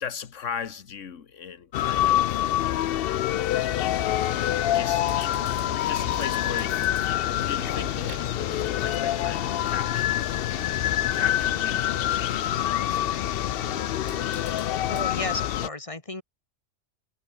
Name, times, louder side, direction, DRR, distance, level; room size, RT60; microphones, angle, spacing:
voice 1, 0.0-2.3 4.1-5.0 5.7-10.1 10.8-13.2, left 7 dB, 80° left, 1.7 m, -38 dB
sound 1, 1.7-15.7, left 12 dB, 60° left, 0.6 m, -26 dB
sound 2, 4.0-15.0, right 8 dB, 85° right, 1.5 m, -45 dB
voice 2, 14.9-16.2, left 2 dB, 25° left, 2.0 m, -33 dB
omnidirectional pair, 1.3 m